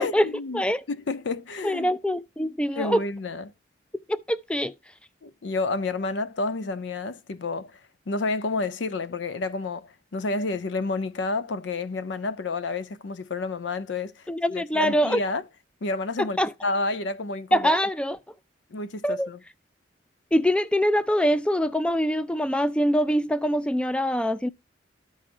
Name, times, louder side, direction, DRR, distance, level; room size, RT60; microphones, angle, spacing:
voice 1, 0.0-0.6 0.9-1.9 2.8-3.5 5.2-7.8 8.1-15.4 15.8-17.7 18.7-19.4, left 3 dB, 80° left, 0.6 m, -30 dB
voice 2, 1.6-3.0 4.1-4.7 14.3-15.2 16.2-16.5 17.5-18.2 19.0-19.3 20.3-24.5, equal, 5° left, 0.3 m, -24 dB
13.5 x 4.9 x 2.5 m
head